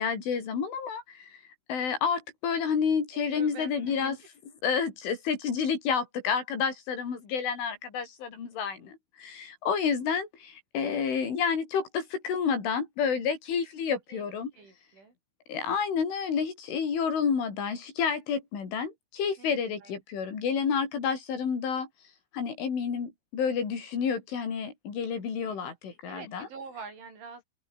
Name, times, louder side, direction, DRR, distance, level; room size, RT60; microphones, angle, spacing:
voice 1, 0.0-1.4 1.7-4.2 4.6-14.5 15.5-21.9 22.3-26.5, left 6 dB, 90° left, 8.0 m, -30 dB
voice 2, 3.1-4.1 14.1-14.3 14.6-15.2 19.4-19.5 19.8-19.9 25.4-25.7 26.1-27.4, right 5 dB, 80° right, 10.5 m, -46 dB
omnidirectional pair, 5.4 m